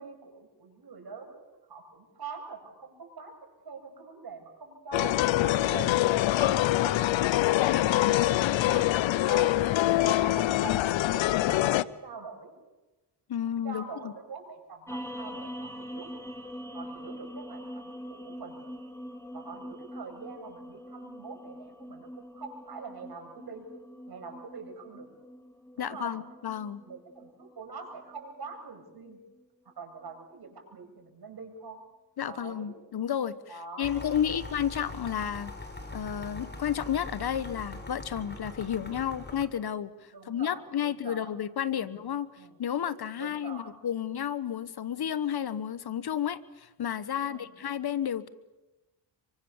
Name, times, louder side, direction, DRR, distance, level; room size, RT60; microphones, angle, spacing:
voice 1, 0.0-1.4 1.7-3.3 3.6-6.0 6.4-7.4 8.5-9.0 9.3-11.7 12.0-12.5 13.6-16.1 16.7-18.6 19.3-23.7 24.1-25.1 25.8-26.2 26.8-29.2 29.6-31.8 32.2-32.8 33.5-34.3 40.1-41.3 41.7-42.0 42.3-42.6 43.2-43.7 47.2-47.5, right 4 dB, 55° right, 3 dB, 7.7 m, -44 dB
sound 1, 4.9-11.8, left 15 dB, 80° left, 0.9 m, -24 dB
voice 2, 7.7-8.2 13.3-14.1 25.8-26.8 32.2-33.4 33.8-35.5 35.9-42.3 42.6-48.3, left 9 dB, 55° left, 16 dB, 1.3 m, -32 dB
sound 2, 14.9-29.4, equal, 5° left, 3.4 m, -44 dB
sound 3, 33.8-39.4, left 2 dB, 20° left, 5.1 m, -42 dB
26.0 x 24.0 x 7.2 m, 1.1 s
supercardioid pair, 65°, 46 cm